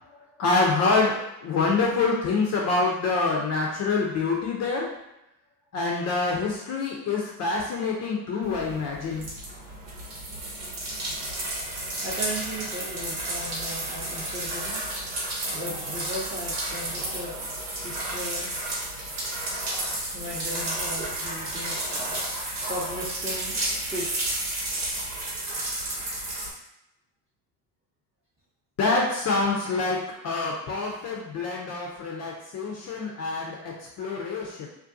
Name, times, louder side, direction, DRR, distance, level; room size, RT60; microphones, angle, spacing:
voice 1, 0.4-4.9 5.7-9.2 28.8-30.0 30.2-34.7, left 3 dB, 35° left, -2 dB, 0.5 m, -26 dB
sound 1, 8.4-26.5, right 1 dB, 75° right, 1.1 m, -32 dB
voice 2, 12.0-14.8 15.5-17.3 17.8-18.5 20.1-22.0 22.7-24.4, equal, 10° right, -7 dB, 0.7 m, -36 dB
2.4 x 2.2 x 2.5 m, 0.87 s
hypercardioid pair, 80°, 50 cm